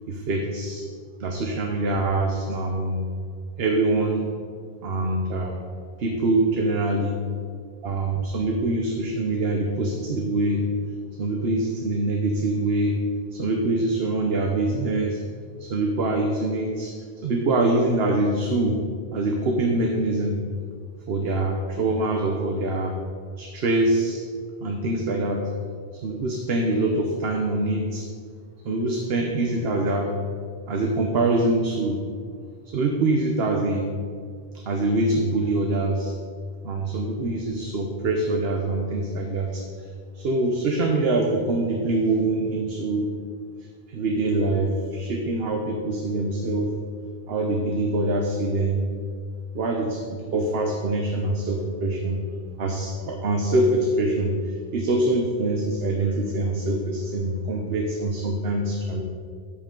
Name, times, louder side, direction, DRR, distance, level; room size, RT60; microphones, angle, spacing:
voice 1, 0.1-0.8 1.2-3.1 3.6-4.3 4.8-5.6 6.0-7.2 7.8-10.6 11.2-13.0 13.3-15.2 15.6-16.9 17.2-18.8 19.1-20.4 21.1-23.0 23.4-24.2 24.6-25.5 26.0-28.0 28.6-30.1 30.7-32.0 32.6-33.9 34.7-36.1 36.6-39.6 40.1-43.1 43.9-46.8 47.3-48.9 49.5-52.2 52.6-54.4 54.7-59.0, right 2 dB, 75° right, 2 dB, 1.1 m, -24 dB
10.0 x 8.2 x 3.7 m, 2.1 s
omnidirectional pair, 1.0 m